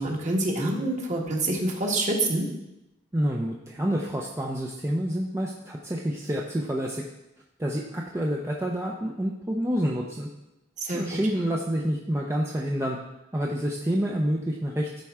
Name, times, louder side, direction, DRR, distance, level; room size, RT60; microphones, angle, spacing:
voice 1, 0.0-2.5 10.8-11.2, right 2 dB, 40° right, -1 dB, 1.5 m, -26 dB
voice 2, 3.1-7.0 7.6-10.3 10.9-13.0 13.3-15.0, equal, 15° right, -2 dB, 0.6 m, -28 dB
13.0 x 4.5 x 3.6 m, 0.91 s
head